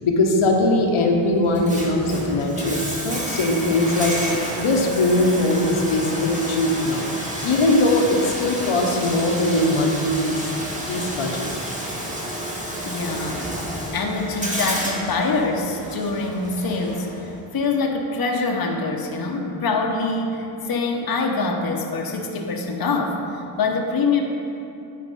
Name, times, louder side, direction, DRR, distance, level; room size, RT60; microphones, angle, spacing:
voice 1, 0.0-4.2 4.6-7.1 7.4-10.5 10.9-11.5, left 2 dB, 75° left, 1 dB, 1.0 m, -20 dB
Bathtub (filling or washing), 1.4-17.4, equal, 15° right, 1.7 m, -30 dB
voice 2, 12.8-13.5 13.9-23.2 23.6-24.2, left 3 dB, 45° left, 2 dB, 0.9 m, -24 dB
9.7 x 4.3 x 5.3 m, 2.8 s
cardioid pair, 70°, 48 cm